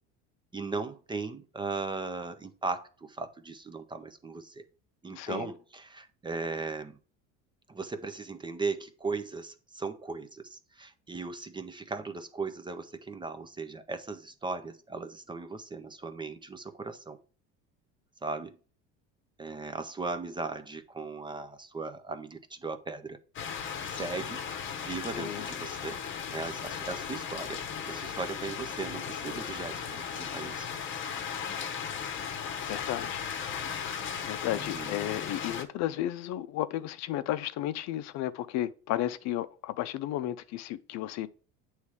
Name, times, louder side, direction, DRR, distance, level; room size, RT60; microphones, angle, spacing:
voice 1, 0.5-4.6 5.0-7.0 7.7-17.2 18.2-18.6 19.4-23.2 23.8-24.4 24.8-26.0 26.3-30.7 34.5-34.9, right 4 dB, 15° right, 0.5 m, -37 dB
voice 2, 5.1-5.5 25.1-25.5 32.7-33.2 34.2-41.3, left 13 dB, 60° left, 0.5 m, -33 dB
sound 1, 23.4-35.6, left 7 dB, 40° left, 0.9 m, -36 dB
8.2 x 3.2 x 4.7 m
cardioid pair, 120°, 31 cm